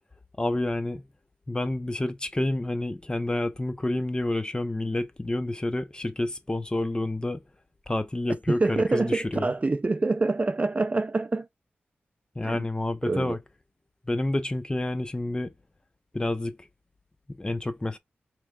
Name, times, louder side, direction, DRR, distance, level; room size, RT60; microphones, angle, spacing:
voice 1, 0.4-1.1 1.5-7.4 7.9-9.5 12.4-13.4 14.1-15.5 16.1-16.6 17.3-18.0, left 1 dB, 20° left, 0.7 m, -29 dB
voice 2, 8.6-11.5 12.4-12.7 13.0-13.4, right 3 dB, 35° right, 0.4 m, -26 dB
4.5 x 3.2 x 2.3 m
cardioid pair, 60°, 4 cm